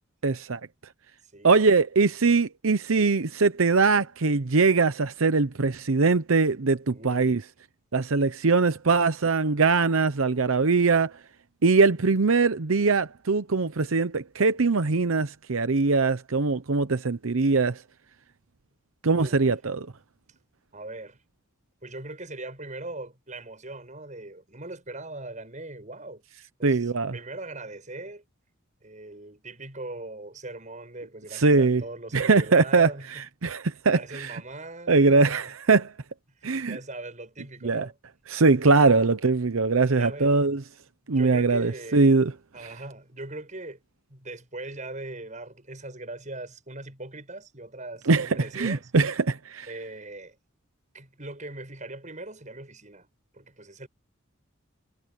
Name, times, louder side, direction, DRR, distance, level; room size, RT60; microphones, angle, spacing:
voice 1, 0.2-0.6 1.4-7.4 7.9-11.1 11.6-17.8 19.0-19.9 26.6-27.2 31.3-31.8 32.1-34.4 34.9-35.9 36.4-36.8 37.6-37.9 38.3-40.6 41.1-42.3 48.1-49.7, right 4 dB, 85° right, 0.8 m, -22 dB
voice 2, 6.9-7.4 19.1-19.5 20.7-21.2 21.8-26.2 26.6-28.2 28.8-33.2 33.9-35.5 36.4-38.0 39.9-40.4 41.1-42.1 42.5-43.8 44.1-48.9 49.7-50.4 50.9-53.1 53.3-53.9, right 2 dB, 35° right, 7.7 m, -40 dB
head